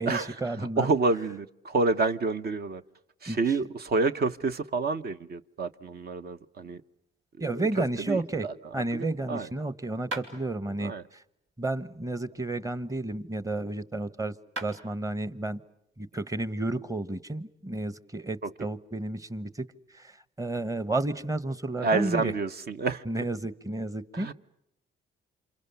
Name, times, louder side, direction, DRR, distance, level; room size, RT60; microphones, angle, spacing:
voice 1, 0.0-0.9 3.3-3.6 7.4-8.5 8.7-11.2 11.6-14.3 14.6-15.6 16.0-19.7 19.9-22.3 23.0-24.3, right 2 dB, 15° right, 1.2 m, -32 dB
voice 2, 0.8-2.8 3.2-6.8 7.4-7.6 8.1-8.5 8.9-9.5 10.8-11.0 18.4-18.5 21.8-23.0 24.1-24.3, right 3 dB, 50° right, 1.0 m, -28 dB
sound 1, 10.1-10.3 12.3-13.6 14.2-14.3 14.6-14.8, right 2 dB, 85° right, 5.1 m, -40 dB
28.5 x 27.0 x 6.9 m
cardioid pair, 90°, 20 cm